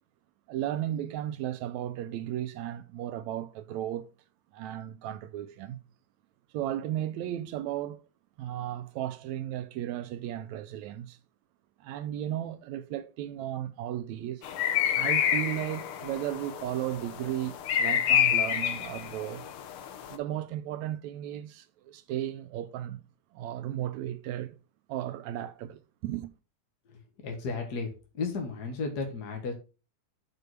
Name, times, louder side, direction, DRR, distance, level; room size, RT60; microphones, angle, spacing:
voice 1, 0.5-4.1 4.5-5.8 6.5-8.0 8.4-11.2 11.8-14.5 14.9-19.5 20.1-23.0 23.3-24.6 24.9-26.3, right 12 dB, 80° right, 1.7 m, -35 dB
sound 1, 14.4-20.2, left 9 dB, 85° left, 1.2 m, -28 dB
voice 2, 26.9-29.5, left 4 dB, 45° left, 1.4 m, -34 dB
6.8 x 4.5 x 6.5 m
omnidirectional pair, 3.7 m